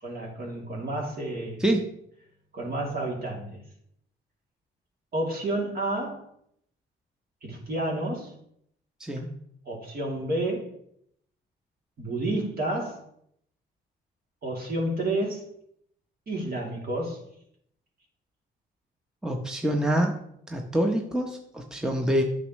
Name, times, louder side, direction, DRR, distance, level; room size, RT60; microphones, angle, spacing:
voice 1, 0.0-1.6 2.5-3.6 5.1-6.3 7.4-8.3 9.6-10.7 12.0-13.0 14.4-15.4 16.3-17.2, right 1 dB, 50° right, -1 dB, 2.8 m, -30 dB
voice 2, 19.2-20.1 20.5-22.2, right 1 dB, 5° right, 3 dB, 0.9 m, -26 dB
9.3 x 6.4 x 3.1 m, 0.70 s
cardioid pair, 90°, 20 cm